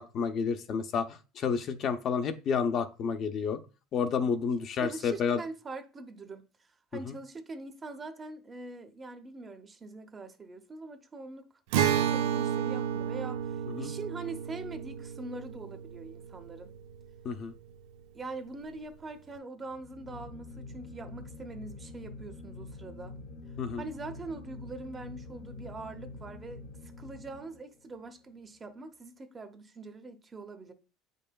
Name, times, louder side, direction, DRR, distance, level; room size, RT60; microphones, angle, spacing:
voice 1, 0.0-3.6 3.9-5.4 7.0-7.1 13.7-13.9 17.2-17.5 23.6-23.8, left 6 dB, 45° left, 0.6 m, -30 dB
voice 2, 4.6-11.5 11.9-16.7 18.1-23.1 23.8-30.7, right 3 dB, 20° right, 0.7 m, -43 dB
Acoustic guitar, 11.7-17.2, right 9 dB, 80° right, 0.5 m, -32 dB
sound 1, 19.6-28.0, left 2 dB, 60° left, 0.9 m, -46 dB
8.0 x 5.4 x 2.3 m
cardioid pair, 135°, 0 cm